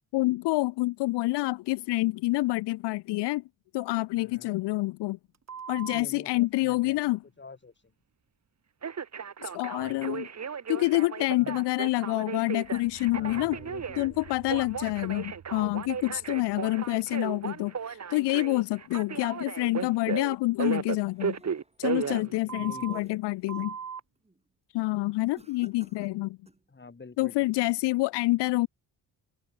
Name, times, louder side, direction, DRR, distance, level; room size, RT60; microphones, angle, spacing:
voice 1, 0.1-3.4 3.7-5.2 5.7-7.2 9.4-10.3 10.7-13.6 14.0-21.4 21.8-23.8 24.7-26.4 27.2-28.7, left 20 dB, 70° left, 0.5 m, -27 dB
voice 2, 4.2-4.6 5.8-7.7 11.3-11.6 13.1-14.2 21.9-23.2 26.7-27.5, left 4 dB, 25° left, 3.8 m, -48 dB
Telephone, 5.5-6.0 8.8-23.0 23.5-24.0, right 6 dB, 40° right, 2.2 m, -35 dB
sound 1, 12.5-17.8, right 10 dB, 60° right, 3.0 m, -52 dB
sound 2, 20.8-21.9 22.4-23.8 24.2-24.5 25.3-26.7, right 2 dB, 15° right, 7.5 m, -58 dB
cardioid pair, 75°, 42 cm